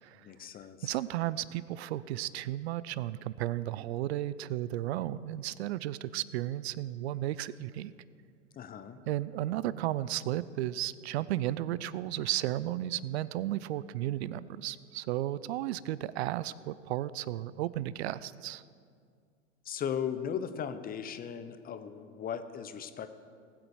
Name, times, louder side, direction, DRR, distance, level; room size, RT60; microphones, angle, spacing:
voice 1, 0.2-1.0 8.6-9.0 19.6-23.1, left 8 dB, 25° left, 10 dB, 0.8 m, -37 dB
voice 2, 0.8-7.9 9.1-18.6, right 14 dB, 60° right, 18 dB, 0.6 m, -34 dB
19.5 x 8.0 x 4.9 m, 2.2 s
hypercardioid pair, 100°, 38 cm